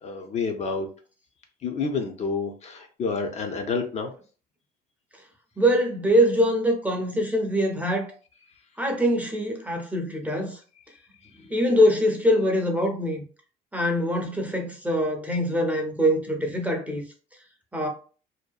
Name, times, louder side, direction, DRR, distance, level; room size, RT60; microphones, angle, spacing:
voice 1, 0.0-0.9 1.6-4.1 11.2-11.3, left 4 dB, 40° left, 0.5 m, -29 dB
voice 2, 5.6-8.1 8.8-10.6 11.5-13.2 13.7-17.0 17.7-17.9, equal, 10° right, 0.6 m, -23 dB
2.6 x 2.1 x 2.3 m
cardioid pair, 110°, 17 cm